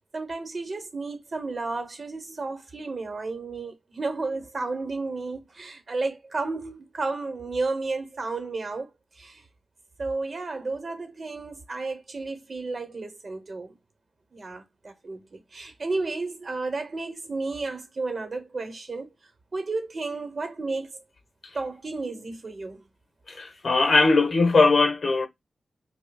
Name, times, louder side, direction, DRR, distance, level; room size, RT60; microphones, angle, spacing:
voice 1, 0.1-9.4 10.0-13.8 14.3-19.1 19.5-21.0 21.5-22.8, right 3 dB, 45° right, 1.0 m, -32 dB
voice 2, 23.3-25.3, left 3 dB, 55° left, 1.1 m, -20 dB
5.3 x 2.2 x 2.3 m
wide cardioid pair, 95°, 0 cm